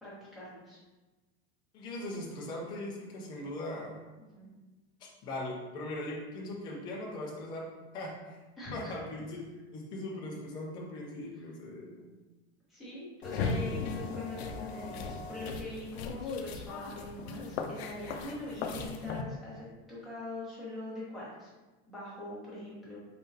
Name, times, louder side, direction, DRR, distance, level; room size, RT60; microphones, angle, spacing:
voice 1, 0.0-0.8 4.3-4.5 8.6-8.9 11.3-11.4 12.7-21.5 21.9-23.0, left 2 dB, ahead, -10 dB, 1.1 m, -43 dB
voice 2, 1.7-4.0 5.2-7.7 7.9-8.4 8.7-9.4 9.7-12.1, left 1 dB, 15° left, -2 dB, 0.3 m, -39 dB
sound 1, 13.2-19.2, left 4 dB, 70° left, 0.5 m, -37 dB
4.5 x 3.6 x 2.7 m, 1.2 s
supercardioid pair, 180°, 33 cm